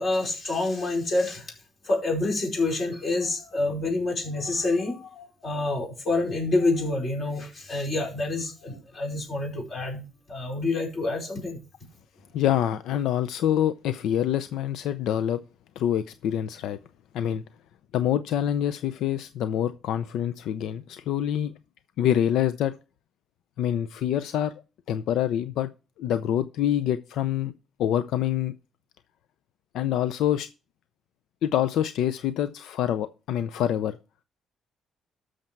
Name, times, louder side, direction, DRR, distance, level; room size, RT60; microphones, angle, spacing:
voice 1, 0.0-1.5 1.8-11.6, left 2 dB, 40° left, 4.9 m, -27 dB
voice 2, 12.3-15.4 15.8-16.8 17.1-17.4 17.9-21.5 22.0-22.8 23.6-24.5 24.9-25.7 26.0-27.5 27.8-28.5 29.7-30.5 31.4-34.0, left 10 dB, 85° left, 0.5 m, -26 dB
13.0 x 6.5 x 4.5 m
cardioid pair, 135°, 0 cm